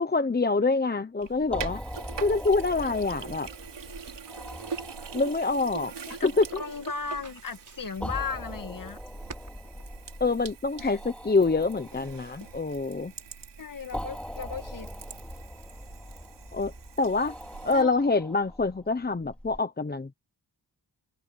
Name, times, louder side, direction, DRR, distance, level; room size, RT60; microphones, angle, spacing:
voice 1, 0.0-1.8 2.2-3.5 5.1-5.9 6.2-6.4 10.2-13.1 16.5-16.7 17.0-17.3 17.6-20.1, left 3 dB, 25° left, 1.0 m, -26 dB
Sink (filling or washing), 1.2-17.8, right 6 dB, 80° right, 4.4 m, -44 dB
sound 1, 1.4-19.6, equal, 5° left, 3.0 m, -42 dB
sound 2, 3.6-11.1, right 4 dB, 45° right, 6.5 m, -54 dB
voice 2, 6.6-9.0 10.8-11.0 13.6-14.9 17.7-17.9, left 5 dB, 50° left, 2.2 m, -36 dB
wide cardioid pair, 125°, 42 cm